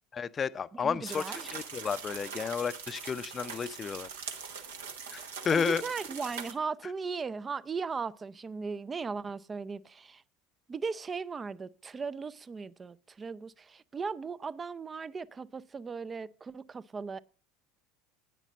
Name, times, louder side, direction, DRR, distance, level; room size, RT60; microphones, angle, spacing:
voice 1, 0.1-4.1 5.1-5.8, left 6 dB, 30° left, 0.6 m, -32 dB
voice 2, 0.7-1.5 5.5-10.2 10.7-17.2, right 5 dB, 25° right, 0.5 m, -37 dB
sound 1, 1.1-6.5, right 6 dB, 70° right, 1.2 m, -42 dB
10.0 x 9.0 x 5.3 m
figure-of-eight pair, 70°, 0 cm